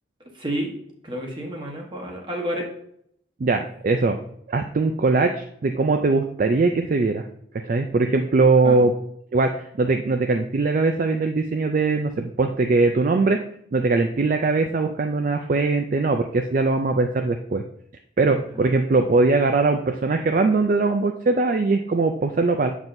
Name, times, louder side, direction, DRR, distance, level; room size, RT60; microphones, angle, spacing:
voice 1, 0.3-0.8 1.0-2.7 8.6-8.8 18.5-18.8, equal, 25° right, 1 dB, 1.1 m, -30 dB
voice 2, 3.4-4.2 4.5-7.3 7.6-8.9 9.3-13.4 13.7-17.6 18.2-22.7, right 3 dB, 45° right, 6 dB, 0.3 m, -21 dB
7.2 x 6.0 x 2.6 m, 0.69 s
head